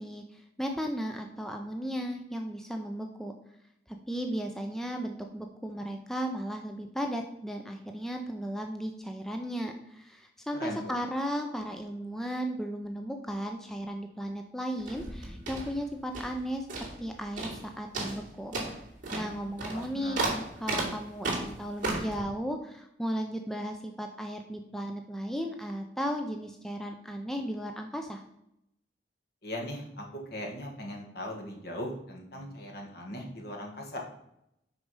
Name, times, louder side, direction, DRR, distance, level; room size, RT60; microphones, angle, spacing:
voice 1, 0.0-3.3 3.9-16.7 17.0-18.5 19.1-28.2, equal, ahead, 3 dB, 0.5 m, -35 dB
voice 2, 10.6-11.0 19.7-20.3 29.4-34.0, left 1 dB, 60° left, 1 dB, 1.6 m, -39 dB
sound 1, 14.8-16.4 16.7-17.1 17.4-17.7 17.9-22.2, right 2 dB, 45° right, 2.6 m, -34 dB
6.2 x 5.0 x 5.4 m, 0.79 s
head